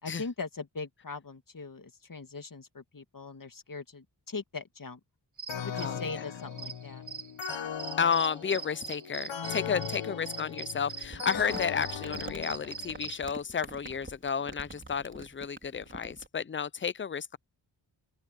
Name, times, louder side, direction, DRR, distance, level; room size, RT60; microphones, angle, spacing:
voice 1, 0.0-5.0 5.5-7.1 9.7-9.9, left 4 dB, 45° left, 2.4 m, -40 dB
sound 1, 5.4-13.2, right 6 dB, 40° right, 1.1 m, -42 dB
sound 2, 5.5-13.1, left 8 dB, 80° left, 1.6 m, -39 dB
voice 2, 5.7-6.2 8.0-17.4, left 6 dB, 25° left, 0.6 m, -32 dB
Crumpling crinkling, 11.0-16.3, right 2 dB, 25° right, 3.9 m, -45 dB
open air
cardioid pair, 45°, 45 cm